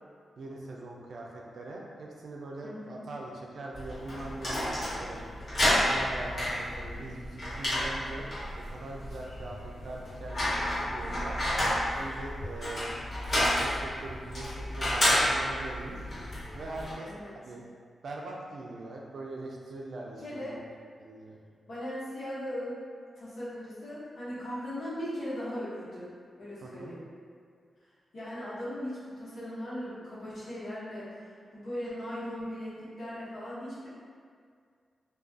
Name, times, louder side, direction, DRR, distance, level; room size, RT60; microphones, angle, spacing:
voice 1, 0.4-5.2 5.6-8.3 8.6-10.5 10.7-11.4 11.9-12.9 13.2-16.1 16.5-17.1 17.4-17.6 18.0-20.6 21.0-21.4 26.6-26.9, right 2 dB, 70° right, -2 dB, 0.4 m, -42 dB
voice 2, 2.6-3.0 17.0-17.3 20.2-20.6 21.7-22.7 23.2-26.1 26.4-27.0 28.1-31.2 31.5-33.9, equal, 75° left, -10 dB, 0.9 m, -38 dB
sound 1, 3.7-16.9, equal, 50° left, 1.0 m, -31 dB
2.3 x 2.3 x 2.4 m, 2.1 s
cardioid pair, 65°, 0 cm